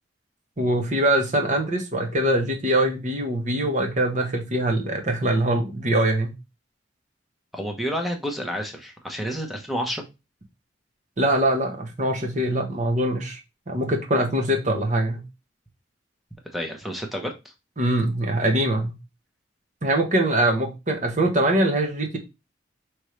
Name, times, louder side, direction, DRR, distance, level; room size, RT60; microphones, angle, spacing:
voice 1, 0.6-6.3 11.2-13.4 13.7-15.2 17.8-19.0 19.8-22.2, right 1 dB, 40° right, 3 dB, 1.0 m, -23 dB
voice 2, 7.5-10.0 16.5-17.5, equal, ahead, 3 dB, 0.9 m, -30 dB
5.2 x 3.2 x 3.1 m, 0.25 s
head